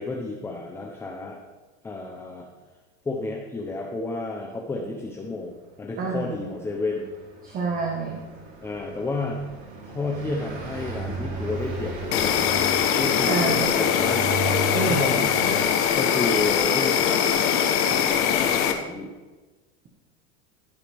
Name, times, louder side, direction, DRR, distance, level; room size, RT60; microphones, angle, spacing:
voice 1, 0.0-1.4 1.8-2.5 3.1-5.5 5.8-7.1 8.6-9.4 9.9-12.6 13.0-14.2 14.7-17.5 17.8-19.1, left 3 dB, 5° left, 1 dB, 0.7 m, -31 dB
voice 2, 6.0-6.4 7.4-8.2 13.3-13.7 14.7-15.2, right 4 dB, 25° right, 0 dB, 1.3 m, -28 dB
Car passing by, 6.5-17.1, right 4 dB, 65° right, 4.0 m, -36 dB
Insect, 12.1-18.7, left 8 dB, 40° left, 1.0 m, -22 dB
15.5 x 8.2 x 3.5 m, 1.2 s
supercardioid pair, 160°, 34 cm